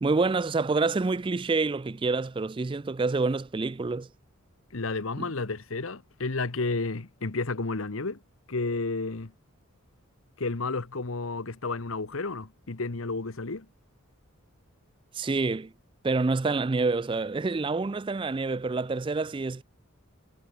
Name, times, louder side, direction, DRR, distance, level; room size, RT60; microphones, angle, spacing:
voice 1, 0.0-4.1 15.1-15.7 16.0-19.6, right 3 dB, 25° right, 0.3 m, -27 dB
voice 2, 4.7-8.2 8.5-9.3 10.4-13.7, left 3 dB, 75° left, 1.2 m, -31 dB
head